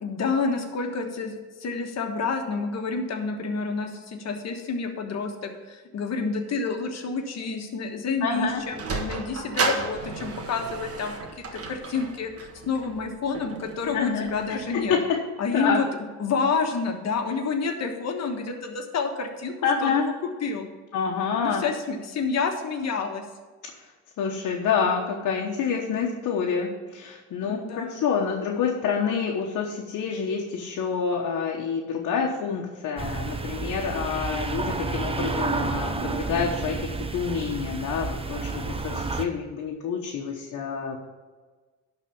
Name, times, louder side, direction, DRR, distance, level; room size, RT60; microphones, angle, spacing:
voice 1, 0.0-15.0 15.4-15.9 16.2-19.5 19.8-20.0 20.4-20.7 21.4-23.2 27.5-28.0, left 4 dB, 60° left, 4 dB, 1.4 m, -29 dB
voice 2, 8.2-8.6 13.9-14.3 14.7-15.2 15.5-15.8 19.6-20.1 20.9-21.6 24.2-41.0, left 6 dB, 75° left, -1 dB, 1.2 m, -27 dB
Sliding door, 8.3-14.9, right 4 dB, 50° right, 1.5 m, -34 dB
sound 1, 33.0-39.3, right 3 dB, 20° right, 0.7 m, -30 dB
11.5 x 4.1 x 6.9 m, 1.3 s
cardioid pair, 90°, 30 cm